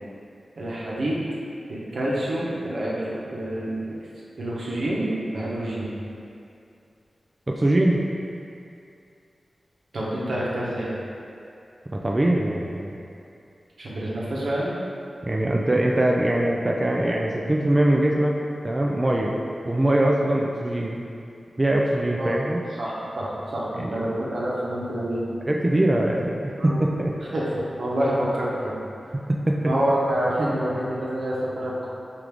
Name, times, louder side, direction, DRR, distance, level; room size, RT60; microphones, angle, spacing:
voice 1, 0.5-1.2 1.7-3.8 4.4-5.9 9.9-10.9 13.8-14.7 22.2-22.3 22.8-25.3 26.6-26.8 27.3-28.8 29.6-31.9, right 1 dB, 80° right, -6 dB, 0.8 m, -27 dB
voice 2, 7.5-8.0 12.0-13.0 15.2-18.3 18.6-19.4 19.6-21.0 21.6-22.6 23.8-24.1 25.5-27.1 29.5-29.6, right 1 dB, 30° right, -2 dB, 0.3 m, -22 dB
4.6 x 2.5 x 3.4 m, 2.5 s
wide cardioid pair, 65°, 0 cm